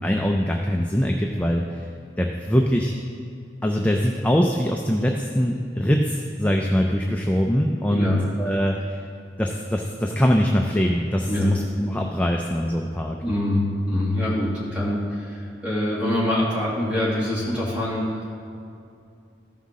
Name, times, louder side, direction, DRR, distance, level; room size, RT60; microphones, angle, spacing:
voice 1, 0.0-1.9 2.2-2.9 3.6-9.0 9.4-13.2, equal, 10° left, 1 dB, 0.4 m, -23 dB
voice 2, 7.8-8.2 11.3-11.6 13.2-18.5, left 1 dB, 5° right, -8 dB, 2.4 m, -24 dB
14.0 x 5.6 x 3.7 m, 2.5 s
head